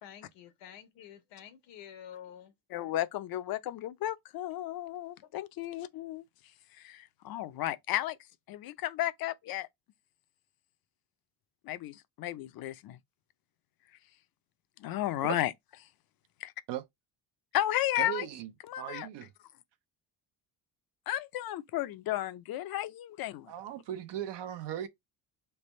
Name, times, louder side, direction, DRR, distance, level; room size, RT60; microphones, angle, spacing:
voice 1, 0.0-2.5 5.2-5.3 5.9-6.0, left 9 dB, 90° left, 1.1 m, -50 dB
voice 2, 2.7-6.2 6.8-8.2 8.5-9.7 11.6-13.0 14.8-15.5 16.4-16.5 17.5-18.3 18.7-19.1 21.1-23.5, left 13 dB, 55° left, 0.5 m, -33 dB
voice 3, 18.0-18.5 18.8-19.3 23.5-24.9, right 11 dB, 75° right, 0.7 m, -38 dB
3.4 x 2.2 x 4.2 m
cardioid pair, 110°, 42 cm